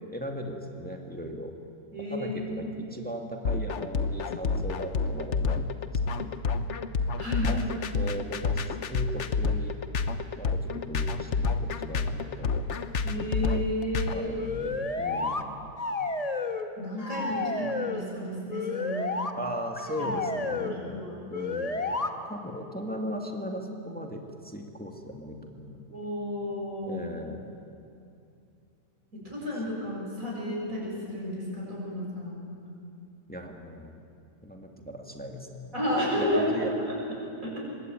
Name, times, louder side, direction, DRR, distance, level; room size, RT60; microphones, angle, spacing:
voice 1, 0.1-1.5 2.1-6.4 7.4-9.8 10.3-12.9 14.1-15.6 17.6-17.7 19.4-21.1 21.3-25.8 26.8-27.5 29.2-29.3 33.3-34.0 34.4-36.7, equal, 5° left, 2 dB, 2.1 m, -38 dB
voice 2, 1.9-2.7 7.2-7.9 13.0-14.3 16.8-19.2 20.0-20.1 20.5-21.3 25.9-27.0 29.1-32.4 35.7-37.0 37.4-37.6, equal, 60° right, -4 dB, 7.6 m, -32 dB
sound 1, 3.4-14.1, left 4 dB, 55° left, 1.2 m, -28 dB
sound 2, 14.4-15.4 15.8-16.7 17.0-18.0 18.5-19.3 19.8-20.8 21.3-22.1, left 3 dB, 25° left, 1.2 m, -31 dB
24.5 x 21.0 x 9.2 m, 2.6 s
omnidirectional pair, 1.6 m